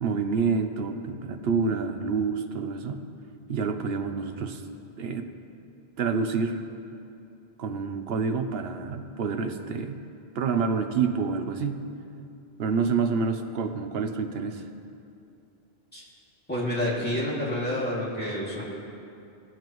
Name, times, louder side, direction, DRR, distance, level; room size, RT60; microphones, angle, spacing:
voice 1, 0.0-3.0 3.5-4.6 5.0-5.3 6.0-6.6 7.6-10.0 10.3-11.8 12.6-14.6, right 5 dB, 75° right, 7 dB, 0.9 m, -28 dB
voice 2, 16.5-18.6, left 1 dB, 10° left, -7 dB, 2.3 m, -28 dB
17.5 x 7.6 x 3.1 m, 2.6 s
omnidirectional pair, 1.0 m